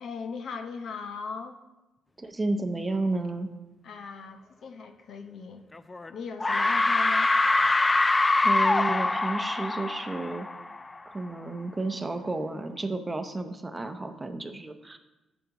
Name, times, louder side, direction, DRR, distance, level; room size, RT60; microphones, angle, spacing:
voice 1, 0.0-1.6 3.8-5.7 6.1-7.3, left 5 dB, 65° left, 7 dB, 0.8 m, -38 dB
voice 2, 2.2-3.5 8.4-10.5 11.0-15.0, right 2 dB, 20° right, 7 dB, 0.7 m, -32 dB
sound 1, 5.7-6.1 6.4-11.0, left 2 dB, 20° left, 0.3 m, -24 dB
11.0 x 7.1 x 2.9 m, 0.99 s
cardioid pair, 90°, 0 cm